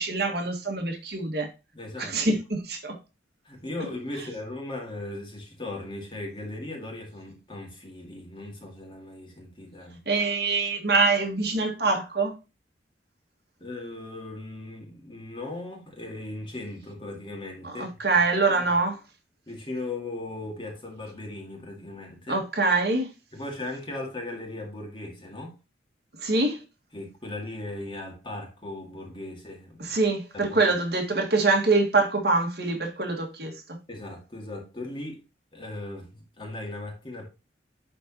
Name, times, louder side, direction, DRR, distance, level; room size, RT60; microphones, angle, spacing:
voice 1, 0.0-1.5 2.0-3.0 4.1-4.2 10.1-12.3 17.6-19.0 22.3-23.1 26.2-26.6 29.8-33.8, right 3 dB, 60° right, 1.9 m, -24 dB
voice 2, 1.7-2.2 3.4-10.0 13.6-18.0 18.6-18.7 19.5-22.4 23.3-25.6 26.9-30.0 30.3-30.6 33.9-35.2 35.5-37.2, left 2 dB, 25° left, 2.1 m, -38 dB
11.0 x 4.0 x 2.9 m
head